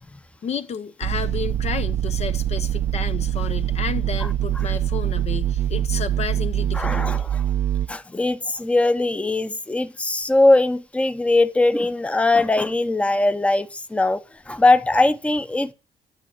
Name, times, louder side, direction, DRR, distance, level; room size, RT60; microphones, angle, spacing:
voice 1, 0.4-7.1, left 6 dB, 45° left, 0.7 m, -31 dB
sound 1, 1.0-7.9, right 10 dB, 75° right, 0.8 m, -24 dB
voice 2, 6.7-7.4 7.9-15.7, left 2 dB, 10° left, 0.7 m, -20 dB
10.0 x 6.2 x 5.5 m
cardioid pair, 110°, 15 cm